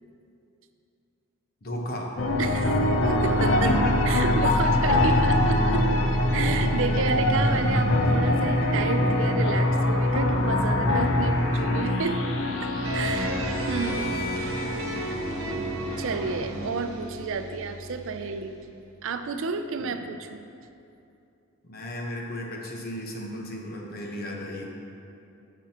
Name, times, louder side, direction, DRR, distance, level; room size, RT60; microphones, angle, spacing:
voice 1, 1.6-2.1 3.6-4.0 4.6-4.9 7.8-9.2 19.8-19.9 21.6-24.6, left 1 dB, 45° left, -1 dB, 1.1 m, -35 dB
sound 1, 2.2-15.6, left 1 dB, 65° left, 0.8 m, -24 dB
voice 2, 2.4-3.7 4.1-5.9 6.3-12.2 12.6-13.4 13.7-14.2 14.9-15.2 16.0-18.6 19.0-20.4, right 4 dB, 65° right, 8 dB, 0.5 m, -31 dB
sound 2, 4.3-16.7, equal, 15° left, 1.1 m, -33 dB
sound 3, 12.8-19.0, right 1 dB, 80° right, 1.1 m, -33 dB
13.0 x 6.0 x 2.9 m, 2.6 s
head